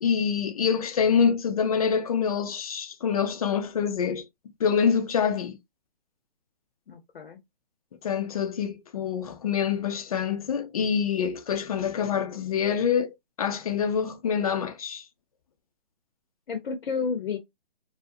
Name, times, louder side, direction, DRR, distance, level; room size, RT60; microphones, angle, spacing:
voice 1, 0.0-4.3 4.6-5.6 8.0-15.0, left 7 dB, 40° left, 0.4 m, -26 dB
voice 2, 6.9-7.4 16.5-17.4, left 5 dB, 70° left, 0.7 m, -31 dB
2.4 x 2.1 x 2.5 m
hypercardioid pair, 145°, 30 cm